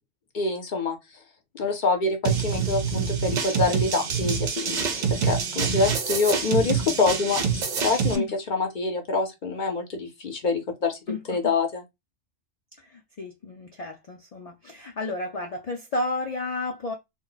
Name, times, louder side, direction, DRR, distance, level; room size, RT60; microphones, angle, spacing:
voice 1, 0.3-1.0 1.5-5.0 5.2-11.0 11.3-11.8, left 3 dB, 50° left, 0.7 m, -26 dB
sound 1, 2.2-8.2, right 6 dB, 55° right, 0.5 m, -26 dB
voice 2, 11.1-11.5 12.8-16.9, left 2 dB, 75° left, 0.3 m, -32 dB
2.2 x 2.1 x 3.8 m
omnidirectional pair, 1.2 m